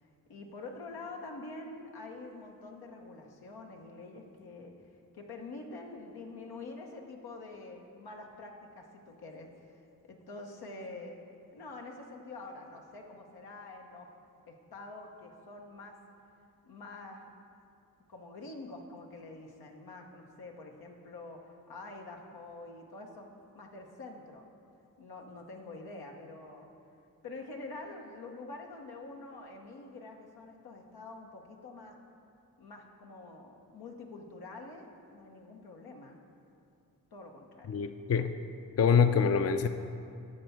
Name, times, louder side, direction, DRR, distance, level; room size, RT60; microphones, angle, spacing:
voice 1, 0.3-4.7 5.1-9.8 10.1-11.2 11.5-14.1 14.5-16.0 16.6-17.3 18.1-23.3 23.5-24.5 25.0-26.7 27.2-32.0 32.6-36.2 37.1-37.7, left 3 dB, 90° left, 1 dB, 1.0 m, -46 dB
voice 2, 37.7-38.3 38.8-39.7, left 6 dB, 40° left, 9 dB, 0.5 m, -25 dB
9.4 x 4.3 x 7.1 m, 2.6 s
cardioid pair, 45°, 36 cm